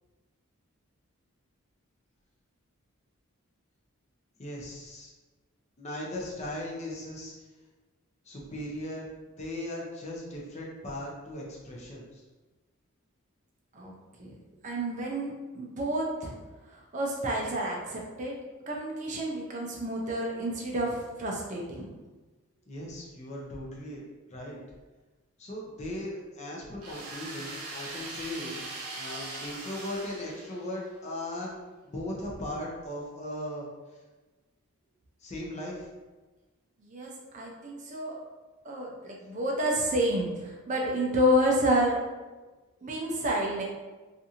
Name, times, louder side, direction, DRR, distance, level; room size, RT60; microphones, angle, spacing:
voice 1, 4.4-5.1 5.8-7.3 8.2-9.1 9.4-12.2 22.7-24.0 24.3-24.6 25.4-28.6 28.9-31.6 31.8-33.7 35.2-35.9, left 1 dB, 30° left, -3 dB, 0.5 m, -38 dB
voice 2, 14.6-16.3 16.9-18.4 18.7-21.9 36.8-38.2 38.6-42.0 42.8-43.6, equal, 35° right, -1 dB, 0.4 m, -29 dB
sound 1, 26.8-30.9, right 2 dB, 90° right, 0.7 m, -40 dB
2.6 x 2.4 x 2.7 m, 1.2 s
head